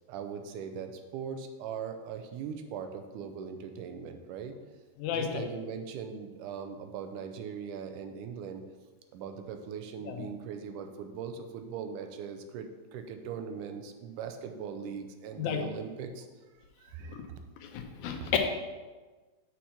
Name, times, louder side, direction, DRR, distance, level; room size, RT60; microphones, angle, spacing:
voice 1, 0.1-4.6 5.1-8.7 9.1-16.3 16.8-17.2 18.2-18.3, right 7 dB, 85° right, 6 dB, 2.2 m, -40 dB
voice 2, 5.0-5.5 10.0-10.3 15.4-15.6 17.1-17.2 17.6-18.4, left 9 dB, 80° left, 4 dB, 2.1 m, -32 dB
7.1 x 4.6 x 5.8 m, 1.3 s
omnidirectional pair, 3.5 m